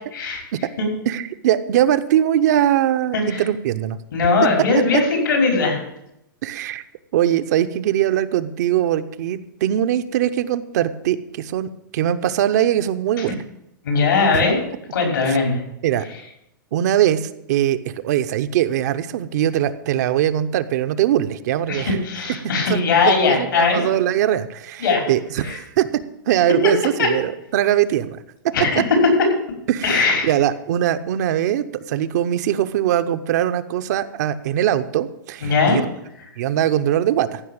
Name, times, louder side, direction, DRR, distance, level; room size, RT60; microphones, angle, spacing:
voice 1, 0.1-0.4 0.8-0.9 3.1-3.4 4.1-5.9 13.8-14.6 14.9-15.6 21.7-24.0 24.8-25.1 25.4-25.6 27.0-27.1 28.5-28.8 29.8-30.3 35.4-35.8, left 4 dB, 80° left, 2 dB, 5.2 m, -19 dB
voice 2, 1.1-4.0 4.7-5.0 6.4-6.8 7.1-13.3 14.3-14.4 15.3-15.4 15.8-16.0 16.7-22.0 22.7-28.2 28.8-28.9 29.7-35.9 36.4-37.4, right 11 dB, 55° right, 10 dB, 0.8 m, -21 dB
15.0 x 5.7 x 8.7 m, 0.82 s
hypercardioid pair, 145°, 11 cm